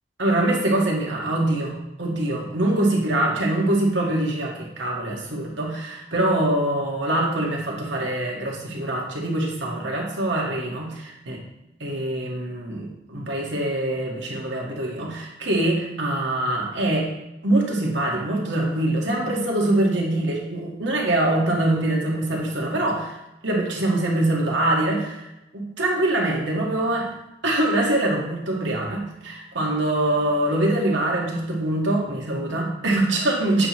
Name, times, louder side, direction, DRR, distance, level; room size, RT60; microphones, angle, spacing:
voice 1, 0.2-1.7 2.0-11.4 11.8-17.1 17.4-23.2 23.4-25.2 25.5-27.1 27.4-33.7, right 1 dB, 80° right, -2 dB, 1.8 m, -24 dB
7.7 x 3.1 x 6.0 m, 0.91 s
head